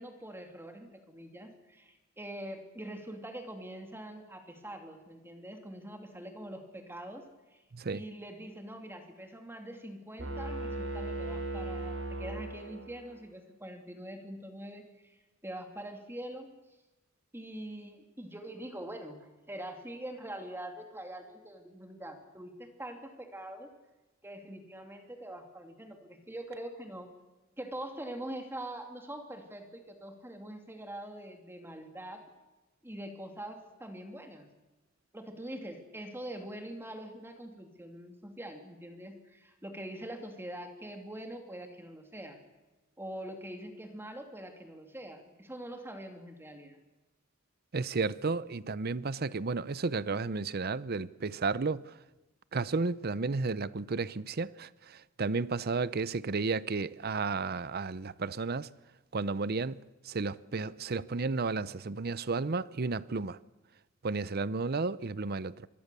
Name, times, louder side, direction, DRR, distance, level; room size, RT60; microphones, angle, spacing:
voice 1, 0.0-7.2 7.5-7.6 7.9-15.2 15.4-16.5 17.3-23.7 24.2-27.1 27.6-32.3 32.8-34.5 35.1-42.4 43.0-46.8, right 1 dB, 10° right, 2.5 m, -44 dB
voice 2, 7.7-8.0 47.7-51.9 52.5-58.7 59.1-59.8 60.0-63.4 64.0-65.7, right 4 dB, 50° right, 0.7 m, -33 dB
sound 1, 10.2-13.1, right 2 dB, 80° right, 7.3 m, -37 dB
26.0 x 21.5 x 6.9 m
head